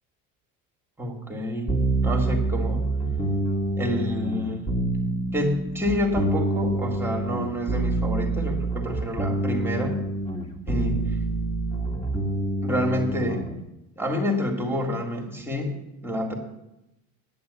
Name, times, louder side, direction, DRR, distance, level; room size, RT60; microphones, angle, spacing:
voice 1, 1.0-2.8 3.8-4.7 5.3-10.0 10.7-11.0 12.6-13.4 14.0-16.3, left 1 dB, 5° right, 1 dB, 2.1 m, -28 dB
sound 1, 1.7-13.5, right 2 dB, 20° left, 2.2 m, -27 dB
10.0 x 9.5 x 8.3 m, 0.92 s
cardioid pair, 125°, 34 cm